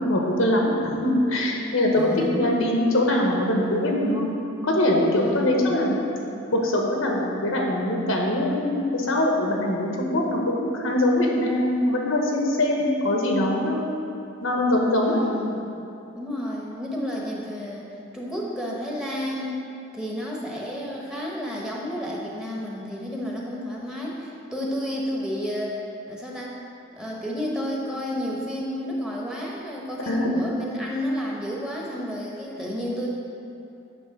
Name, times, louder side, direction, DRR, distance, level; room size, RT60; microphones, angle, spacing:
voice 1, 0.0-4.3 4.6-6.0 6.5-13.8 14.4-15.2 30.1-30.3, left 1 dB, 90° left, 0 dB, 1.1 m, -22 dB
voice 2, 1.9-2.5 5.2-5.7 15.0-15.7 16.1-17.9 18.1-19.6 19.9-25.8 26.1-26.6 27.0-33.1, equal, 5° right, -4 dB, 0.9 m, -31 dB
9.2 x 3.2 x 6.1 m, 2.8 s
head